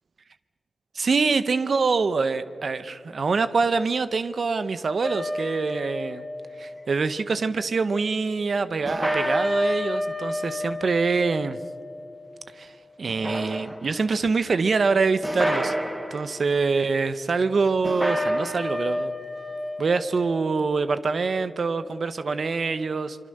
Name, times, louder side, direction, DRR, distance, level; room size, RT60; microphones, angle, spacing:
voice 1, 0.9-6.2 6.6-11.6 12.6-12.7 13.0-15.7 16.1-19.1 19.8-23.2, right 4 dB, 65° right, 13 dB, 0.8 m, -25 dB
sound 1, 5.0-7.1 8.9-12.6 13.1-14.1 15.2-16.4 17.8-20.6, equal, ahead, 1.4 m, -30 dB
26.0 x 23.5 x 6.6 m, 2.3 s
cardioid pair, 45°, 0 cm